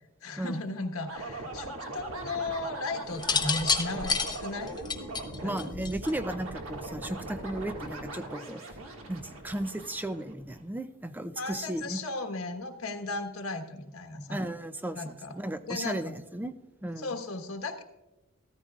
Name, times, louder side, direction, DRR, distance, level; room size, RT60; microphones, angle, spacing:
voice 1, 0.0-4.8 5.0-5.1 5.4-5.7 11.4-14.4 14.9-15.3 15.7-16.1 17.0-17.8, left 2 dB, 80° left, 5 dB, 1.3 m, -36 dB
sound 1, 1.1-10.6, right 2 dB, 65° right, 1.8 m, -40 dB
sound 2, 3.1-6.3 7.4-7.8, left 5 dB, 20° left, 0.8 m, -29 dB
voice 2, 5.4-8.7 9.1-12.0 14.3-16.5 16.8-17.1, right 1 dB, 10° right, 11 dB, 0.4 m, -35 dB
13.5 x 13.5 x 2.4 m, 1.0 s
head